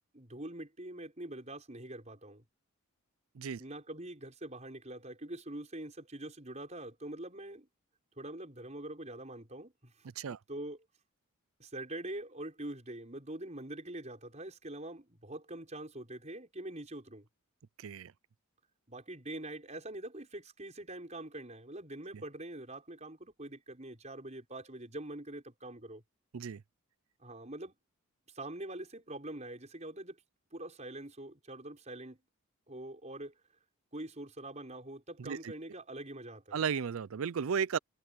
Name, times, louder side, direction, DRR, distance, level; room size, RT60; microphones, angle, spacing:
voice 1, 0.1-2.4 3.6-7.7 8.2-10.8 11.6-17.3 18.9-26.0 27.2-27.7 28.3-30.2 30.5-32.2 32.7-33.3 33.9-36.6, right 1 dB, 30° right, 5.6 m, -44 dB
voice 2, 17.8-18.1 22.1-22.2 26.3-26.6 35.2-35.5 36.5-37.8, right 6 dB, 70° right, 0.5 m, -34 dB
head